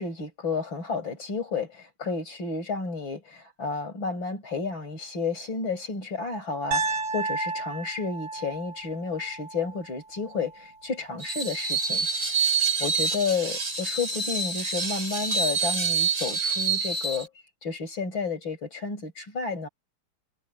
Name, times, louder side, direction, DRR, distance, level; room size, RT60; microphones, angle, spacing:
voice 1, 0.0-12.1 12.8-17.3 17.6-19.7, left 4 dB, 60° left, 7.5 m, -31 dB
Piano, 6.7-10.8, right 3 dB, 65° right, 8.8 m, -33 dB
Screech, 11.2-17.3, right 5 dB, 45° right, 4.3 m, -27 dB
omnidirectional pair, 2.4 m